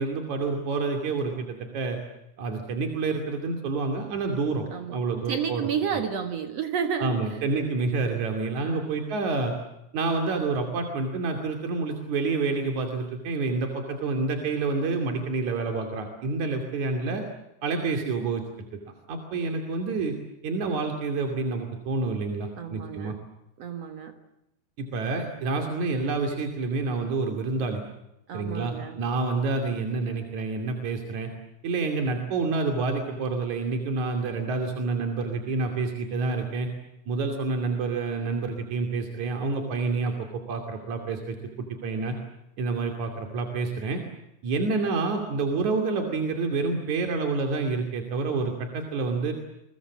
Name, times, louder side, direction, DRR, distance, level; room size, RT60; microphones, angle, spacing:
voice 1, 0.0-2.0 2.4-4.7 4.9-5.7 7.0-9.6 9.9-17.2 17.6-18.4 19.1-20.1 20.4-23.2 24.8-27.8 28.3-31.3 31.6-36.7 37.1-42.2 42.6-44.0 44.4-49.3, right 3 dB, 75° right, 4 dB, 4.0 m, -28 dB
voice 2, 5.3-7.4 8.6-8.9 22.6-23.2 23.6-24.1 28.3-29.0, right 7 dB, 60° right, 6 dB, 2.6 m, -31 dB
28.5 x 23.5 x 7.4 m, 0.86 s
omnidirectional pair, 3.3 m